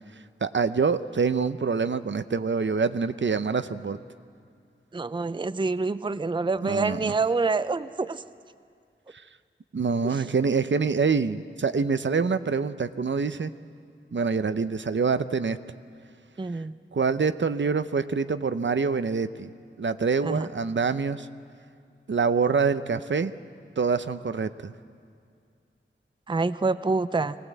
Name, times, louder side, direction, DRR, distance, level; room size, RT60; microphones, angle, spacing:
voice 1, 0.4-4.0 6.6-7.1 9.7-13.5 14.1-15.6 16.9-19.5 19.8-21.3 22.1-23.3 23.8-24.7, right 5 dB, 65° right, 11 dB, 0.7 m, -25 dB
voice 2, 4.9-8.2 10.0-10.2 16.4-16.7 20.2-20.5 26.3-27.4, right 3 dB, 25° right, 13 dB, 0.5 m, -27 dB
21.0 x 18.0 x 8.2 m, 2.3 s
wide cardioid pair, 70°, 21 cm